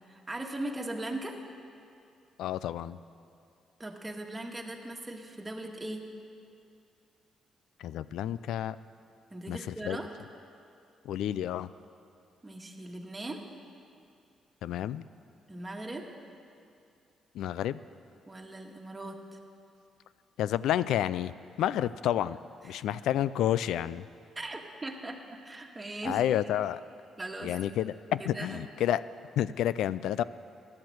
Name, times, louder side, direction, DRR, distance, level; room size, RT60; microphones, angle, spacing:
voice 1, 0.1-1.4 3.8-6.0 9.3-10.1 12.4-13.4 15.5-16.1 18.3-19.4 22.7-22.8 24.4-26.2 27.2-27.5 28.2-28.6, right 2 dB, 20° right, 1 dB, 1.9 m, -39 dB
voice 2, 2.4-3.0 7.8-8.8 9.5-10.0 11.1-11.7 14.6-15.0 17.3-17.8 20.4-21.3 21.6-22.4 22.6-24.1 26.0-26.8 27.4-29.0 29.4-30.2, left 11 dB, 80° left, 17 dB, 0.4 m, -30 dB
15.0 x 11.0 x 7.9 m, 2.5 s
cardioid pair, 90°, 0 cm